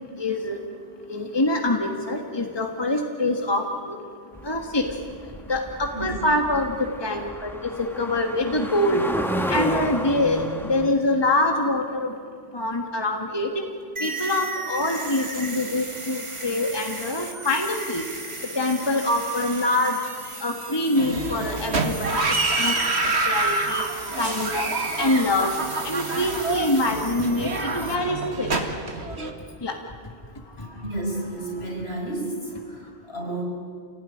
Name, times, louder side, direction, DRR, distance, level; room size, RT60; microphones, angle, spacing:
voice 1, 0.2-0.6 1.1-4.0 4.4-4.8 5.5-6.8 7.0-9.0 9.5-12.1 12.5-13.6 14.0-18.0 18.6-20.0 20.4-22.2 22.6-22.7 23.3-23.8 24.2-24.7 25.0-25.5 25.8-28.5 29.6-29.7, left 2 dB, 25° left, 3 dB, 1.7 m, -25 dB
sound 1, 4.4-10.9, equal, ahead, 1.5 m, -32 dB
sound 2, 14.0-28.0, right 3 dB, 30° right, 1.6 m, -37 dB
sound 3, 21.0-29.3, right 3 dB, 85° right, 2.2 m, -27 dB
voice 2, 30.6-33.4, right 2 dB, 70° left, -1 dB, 5.7 m, -32 dB
28.0 x 17.5 x 10.0 m, 2.2 s
omnidirectional pair, 1.1 m